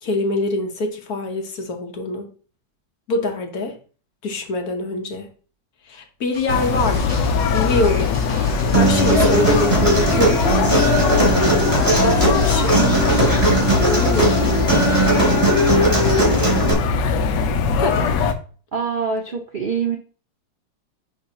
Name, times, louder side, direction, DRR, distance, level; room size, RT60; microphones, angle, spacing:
voice 1, 0.0-2.3 3.1-3.8 4.2-5.3 5.9-7.1 7.5-8.2 8.7-10.4 11.2-12.9 13.9-14.6 15.8-16.7 17.8-18.2, left 2 dB, 55° left, 4 dB, 1.4 m, -24 dB
sound 1, 6.3-15.5, left 2 dB, 30° left, 2.2 m, -32 dB
sound 2, 6.5-18.3, left 5 dB, 70° left, 1.3 m, -21 dB
Human voice, 8.7-16.7, right 2 dB, 15° right, 2.8 m, -18 dB
voice 2, 18.7-20.0, right 6 dB, 85° right, 2 dB, 0.4 m, -24 dB
10.0 x 3.4 x 2.8 m, 0.39 s
omnidirectional pair, 2.1 m